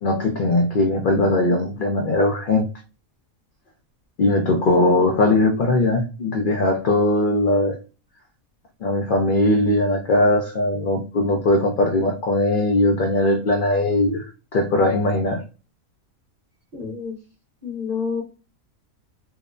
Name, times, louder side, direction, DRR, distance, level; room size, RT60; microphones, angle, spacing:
voice 1, 0.0-2.7 4.2-7.8 8.8-15.4, left 2 dB, 60° left, 2 dB, 0.5 m, -20 dB
voice 2, 16.7-17.2 17.6-18.2, left 5 dB, 35° right, -2 dB, 0.8 m, -28 dB
2.7 x 2.0 x 2.4 m, 0.33 s
omnidirectional pair, 1.5 m